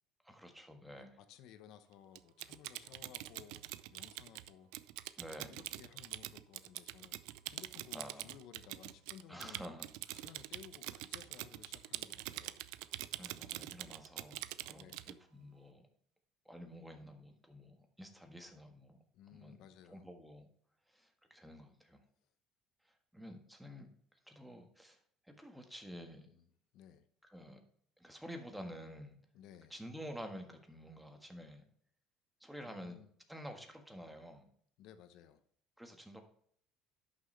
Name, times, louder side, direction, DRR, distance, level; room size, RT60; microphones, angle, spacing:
voice 1, 0.2-1.2 5.2-5.6 7.9-8.3 9.3-10.3 13.2-15.8 16.4-19.6 19.8-20.5 20.9-22.0 22.8-25.0 25.2-26.3 27.2-27.6 28.0-29.2 29.7-31.6 32.4-33.0 33.3-34.5 35.8-36.2, equal, 5° right, 4 dB, 1.6 m, -50 dB
voice 2, 1.0-4.7 5.5-7.2 7.5-9.6 10.1-12.6 14.7-15.1 19.1-20.1 26.2-26.4 26.7-27.0 29.3-29.7 32.6-33.1 34.8-35.4, left 9 dB, 70° left, 10 dB, 1.0 m, -57 dB
Typing, 2.1-15.1, right 17 dB, 85° right, 0.4 m, -45 dB
11.0 x 6.4 x 3.3 m, 0.63 s
cardioid pair, 125°, 0 cm